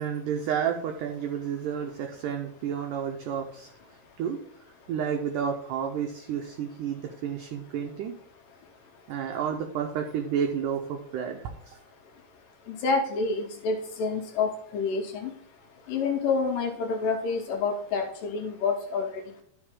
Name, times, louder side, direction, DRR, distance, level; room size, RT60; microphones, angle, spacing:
voice 1, 0.0-3.7 4.2-4.4 4.9-8.1 9.1-11.8, right 8 dB, 85° right, 4 dB, 1.8 m, -31 dB
voice 2, 12.7-15.3 15.9-19.4, left 4 dB, 75° left, 3 dB, 2.1 m, -28 dB
12.0 x 4.8 x 3.7 m, 0.70 s
omnidirectional pair, 4.5 m